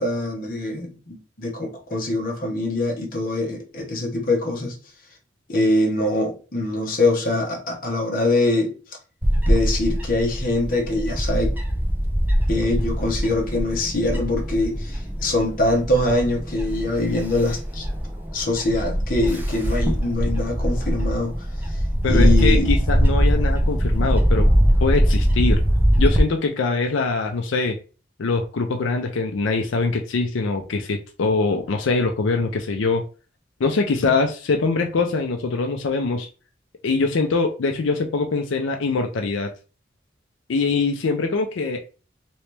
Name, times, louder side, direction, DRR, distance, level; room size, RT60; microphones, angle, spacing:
voice 1, 0.0-4.8 5.5-8.7 9.5-11.5 12.5-17.9 18.3-21.3 22.1-22.7, left 2 dB, 45° left, 0.9 m, -23 dB
Bird / Wind, 9.2-26.2, equal, 10° right, 0.4 m, -21 dB
voice 2, 22.0-24.5 24.8-25.6 26.0-27.8 28.2-33.0 33.6-36.3 36.8-39.5 40.5-41.8, left 3 dB, 85° left, 0.5 m, -23 dB
3.1 x 2.9 x 3.2 m
head